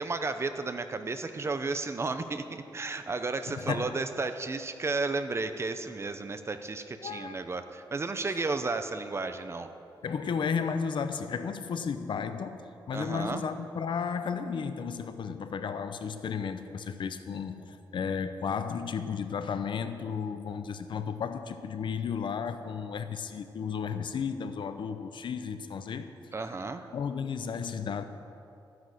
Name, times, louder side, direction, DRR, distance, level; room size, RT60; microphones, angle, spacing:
voice 1, 0.0-9.7 12.9-13.4 26.3-26.9, right 3 dB, 30° right, 9 dB, 0.7 m, -33 dB
voice 2, 3.5-4.0 7.0-7.4 8.3-8.4 10.0-26.1 26.9-28.0, left 6 dB, 70° left, 9 dB, 0.7 m, -33 dB
13.0 x 9.5 x 6.4 m, 2.7 s
wide cardioid pair, 135°, 9 cm